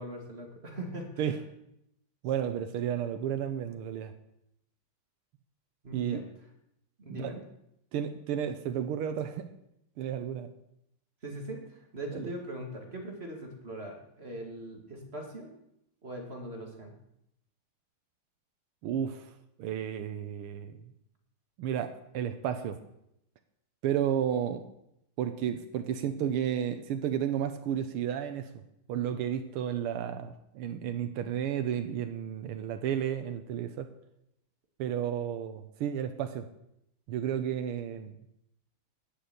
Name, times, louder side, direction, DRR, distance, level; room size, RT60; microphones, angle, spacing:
voice 1, 0.0-1.4 5.8-6.2 7.0-7.4 11.2-15.5 16.0-16.9, right 1 dB, 30° right, 1 dB, 2.5 m, -41 dB
voice 2, 2.2-4.1 5.9-6.2 7.1-7.3 7.9-9.5 10.0-10.5 12.1-12.3 18.8-19.3 19.6-20.7 21.6-22.8 23.8-24.6 25.2-28.5 28.9-33.9 34.8-36.5 37.1-38.1, right 9 dB, 90° right, 8 dB, 1.7 m, -32 dB
11.5 x 7.0 x 9.4 m, 0.81 s
omnidirectional pair, 2.4 m